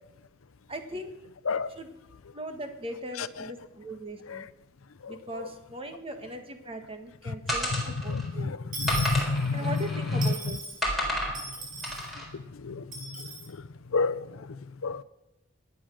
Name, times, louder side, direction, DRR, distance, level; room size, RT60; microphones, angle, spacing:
voice 1, 0.7-1.1 1.7-1.9 2.3-4.5 5.1-8.5 9.5-10.6, right 1 dB, 25° right, 1.7 m, -39 dB
sound 1, 7.5-8.3 8.9-10.3 10.8-11.4 11.8-12.3, equal, ahead, 4.1 m, -31 dB
voice 2, 8.1-9.8 10.2-10.3 12.6-12.8 13.9-14.3 14.8-15.0, left 4 dB, 80° left, 0.6 m, -28 dB
Dishes pots and pans / Coin (dropping), 8.7-9.8 10.2-10.8 11.3-12.1 12.9-13.5, right 1 dB, 40° right, 5.6 m, -38 dB
24.0 x 9.3 x 6.4 m
head